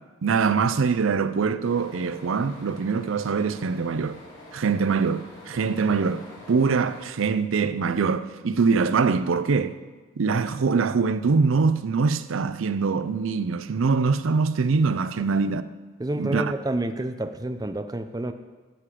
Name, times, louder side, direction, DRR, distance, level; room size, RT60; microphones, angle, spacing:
voice 1, 0.2-4.2 4.5-9.7 10.2-15.6 16.2-16.5, right 5 dB, 85° right, 0.5 m, -23 dB
sound 1, 1.6-7.0, left 1 dB, 80° left, 4.3 m, -46 dB
voice 2, 16.0-18.3, right 1 dB, 20° right, 0.5 m, -29 dB
13.0 x 7.6 x 4.9 m
head